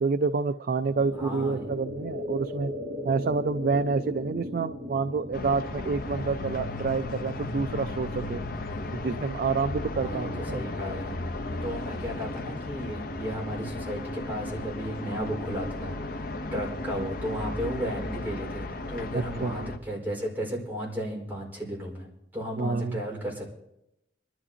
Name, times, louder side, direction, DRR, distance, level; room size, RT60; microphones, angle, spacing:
voice 1, 0.0-2.7 3.0-8.4 8.9-10.6 19.1-19.7 22.6-23.0, right 4 dB, 55° right, 11 dB, 0.4 m, -28 dB
voice 2, 0.8-1.7 9.9-11.2 11.6-22.1 22.3-23.5, equal, 10° right, -4 dB, 4.5 m, -34 dB
sound 1, 1.0-7.1, left 1 dB, 40° right, 3.6 m, -37 dB
sound 2, 5.3-19.8, left 2 dB, 55° left, 0.8 m, -35 dB
26.0 x 12.5 x 2.8 m, 0.85 s
head